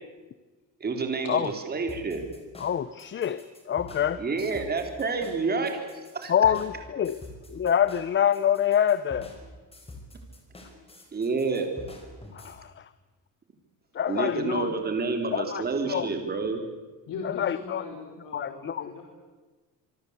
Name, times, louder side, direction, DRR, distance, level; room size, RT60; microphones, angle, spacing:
voice 1, 0.8-2.2 4.2-6.3 11.1-11.7 14.1-16.6, right 4 dB, 25° right, 5 dB, 3.8 m, -29 dB
sound 1, 1.9-12.6, left 1 dB, 15° left, 5.1 m, -46 dB
voice 2, 2.6-4.2 6.3-7.2 7.5-9.3 12.3-12.9 13.9-14.7 15.3-16.1 17.2-17.8 18.3-19.0, left 9 dB, 35° left, 15 dB, 0.8 m, -26 dB
voice 3, 14.3-14.6 17.1-19.0, left 5 dB, 60° left, 1 dB, 5.1 m, -38 dB
27.0 x 23.5 x 8.2 m, 1.3 s
cardioid pair, 155°, 35 cm